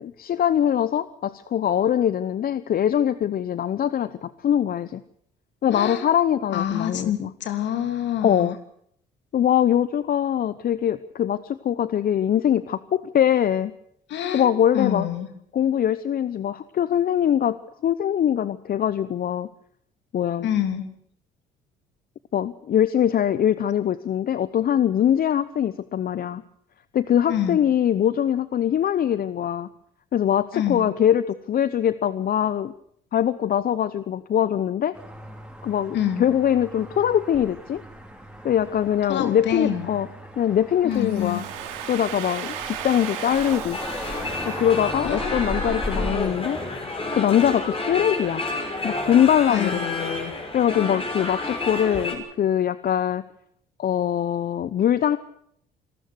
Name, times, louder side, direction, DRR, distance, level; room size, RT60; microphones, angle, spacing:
voice 1, 0.0-5.0 5.6-7.3 8.2-8.6 9.3-13.7 14.3-15.1 15.5-19.5 20.1-20.5 22.3-26.4 26.9-29.7 30.1-32.7 33.1-35.0 35.6-37.8 38.4-40.1 40.4-41.4 41.9-43.8 44.5-46.6 47.1-48.5 48.8-49.8 50.5-53.2 53.8-55.2, left 10 dB, 50° left, 16 dB, 0.8 m, -22 dB
voice 2, 5.7-6.0 6.5-8.5 14.1-14.5 14.7-15.3 20.4-20.9 27.3-27.6 30.5-30.8 35.9-36.2 39.1-39.9 40.8-41.4 45.0-45.4 49.5-50.3, left 10 dB, 70° left, 8 dB, 3.0 m, -26 dB
sound 1, 34.9-46.1, equal, 5° right, 5.6 m, -37 dB
Domestic sounds home sounds, 40.9-45.7, right 10 dB, 85° right, 3.0 m, -36 dB
sound 2, 43.7-52.2, left 2 dB, 30° left, 6.1 m, -30 dB
26.0 x 13.0 x 8.0 m, 0.69 s
supercardioid pair, 65°, 19 cm